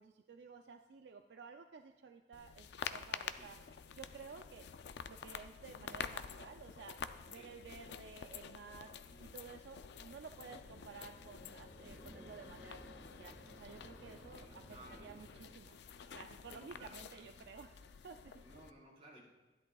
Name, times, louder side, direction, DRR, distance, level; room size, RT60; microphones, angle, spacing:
voice 1, 0.0-4.6 5.1-7.0 7.3-8.9 9.2-14.6 14.9-15.8 16.1-18.4, right 5 dB, 70° right, 5 dB, 0.4 m, -54 dB
sound 1, 2.3-18.7, left 6 dB, 70° left, 0.4 m, -49 dB
voice 2, 9.0-9.3 14.4-15.3 16.5-17.3 18.4-19.2, right 1 dB, 35° right, -6 dB, 4.0 m, -58 dB
sound 2, 10.2-15.6, right 1 dB, 5° right, 1.6 m, -58 dB
15.0 x 10.5 x 2.3 m, 1.1 s
head